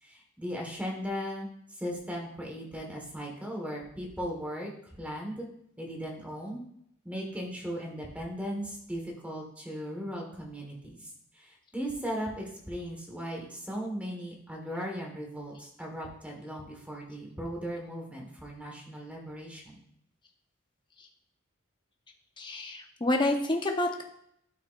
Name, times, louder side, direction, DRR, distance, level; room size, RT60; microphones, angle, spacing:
voice 1, 0.0-4.7 5.0-5.5 5.8-6.6 7.0-19.8, equal, 5° right, -1 dB, 1.4 m, -37 dB
voice 2, 22.4-24.0, left 1 dB, 25° left, 3 dB, 0.9 m, -28 dB
12.5 x 5.7 x 2.5 m, 0.72 s
head